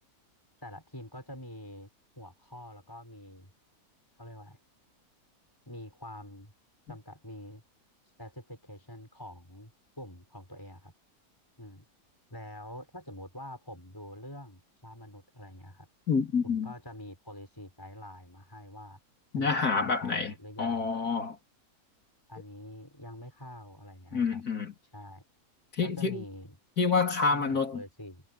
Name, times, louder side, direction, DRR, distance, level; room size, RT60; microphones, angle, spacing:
voice 1, 0.6-1.9 2.2-3.5 4.2-4.6 5.7-6.5 6.9-7.6 8.2-9.7 10.0-10.9 11.6-11.8 12.3-15.9 16.4-19.0 19.3-20.8 22.3-24.4 24.9-25.2 25.8-26.6 27.3-28.2, left 1 dB, 15° left, 6.3 m, -46 dB
voice 2, 16.1-16.7 19.3-21.4 24.1-24.7 25.8-26.2 26.8-27.8, left 5 dB, 75° left, 4.0 m, -28 dB
omnidirectional pair, 1.6 m